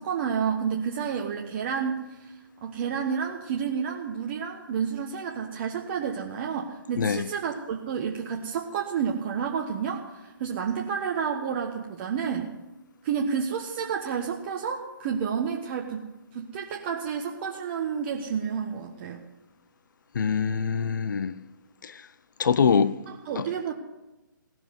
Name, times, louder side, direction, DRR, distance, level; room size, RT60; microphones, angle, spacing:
voice 1, 0.0-2.3 2.6-12.5 13.0-16.0 16.3-19.2 23.1-23.7, right 7 dB, 35° right, 1.2 m, -30 dB
voice 2, 7.0-7.3 20.1-21.4 21.8-22.1 22.4-23.0 23.4-23.5, left 6 dB, 65° left, 0.7 m, -24 dB
17.0 x 7.7 x 9.3 m
hypercardioid pair, 150°, 11 cm